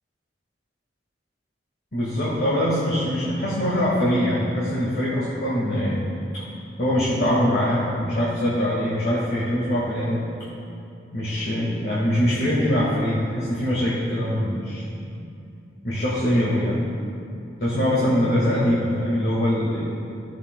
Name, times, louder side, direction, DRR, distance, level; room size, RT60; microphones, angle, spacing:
voice 1, 1.9-6.0 6.3-6.5 6.8-10.2 11.1-15.1 15.8-16.9 17.6-19.8, equal, 55° left, -8 dB, 1.6 m, -23 dB
15.0 x 7.1 x 2.2 m, 2.6 s
head